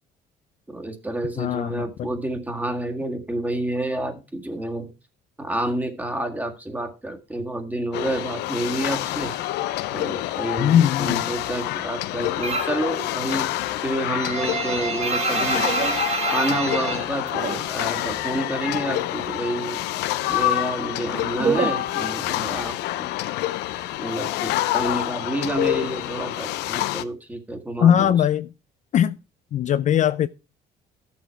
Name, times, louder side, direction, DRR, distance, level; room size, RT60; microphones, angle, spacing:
voice 1, 0.7-4.9 5.4-9.3 9.9-13.5 13.8-15.7 16.3-19.8 20.3-23.1 24.0-28.1, right 1 dB, 10° right, 1.8 m, -29 dB
voice 2, 1.4-2.1 10.6-11.3 27.8-28.5 28.9-29.2 29.5-30.3, left 10 dB, 45° left, 0.4 m, -20 dB
sound 1, 7.9-27.0, left 15 dB, 90° left, 0.6 m, -27 dB
sound 2, 12.4-12.9 13.2-18.1 18.3-19.4 19.7-22.5, right 5 dB, 40° right, 1.1 m, -27 dB
12.5 x 7.3 x 4.4 m
cardioid pair, 110°, 17 cm